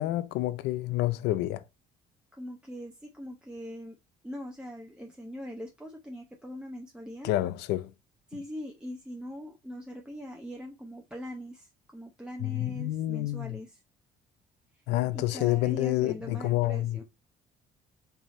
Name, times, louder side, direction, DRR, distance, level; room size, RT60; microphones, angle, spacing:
voice 1, 0.0-1.6 7.2-7.9 12.4-13.6 14.9-17.0, left 16 dB, 90° left, 0.5 m, -28 dB
voice 2, 2.3-4.0 4.2-7.3 8.3-13.8 15.1-17.0, equal, 5° right, 0.7 m, -41 dB
4.8 x 2.7 x 4.2 m
cardioid pair, 110°, 17 cm